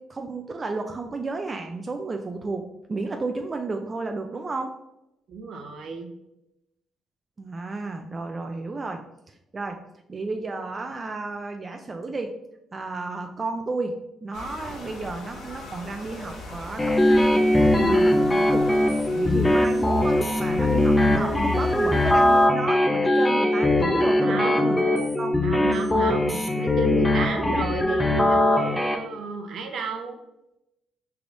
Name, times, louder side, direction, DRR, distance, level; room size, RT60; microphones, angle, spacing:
voice 1, 0.0-4.8 7.4-9.8 10.1-12.3 12.7-18.7 19.1-25.4, right 3 dB, 30° right, 4 dB, 0.3 m, -32 dB
voice 2, 5.3-6.1 17.8-18.2 24.2-24.8 25.4-30.2, right 4 dB, 70° right, 4 dB, 0.7 m, -32 dB
sound 1, 14.3-22.5, left 1 dB, 85° left, 1.3 m, -40 dB
sound 2, 16.8-29.0, left 1 dB, 15° left, 0.6 m, -21 dB
4.7 x 3.3 x 2.6 m, 0.88 s
cardioid pair, 90°, 0 cm